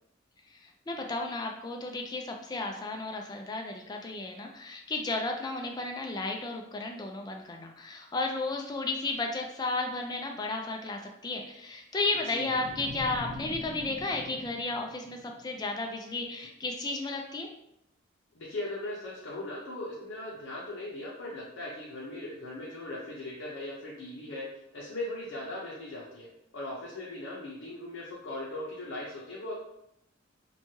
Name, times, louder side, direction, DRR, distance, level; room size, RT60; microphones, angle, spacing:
voice 1, 0.5-17.5, left 3 dB, 20° left, 2 dB, 0.3 m, -33 dB
voice 2, 12.2-12.6 18.3-24.5 24.7-26.3 26.5-29.5, left 1 dB, 80° left, -5 dB, 0.6 m, -39 dB
sound 1, 12.5-15.7, equal, 70° right, 0.7 m, -43 dB
3.0 x 2.2 x 2.7 m, 0.80 s
head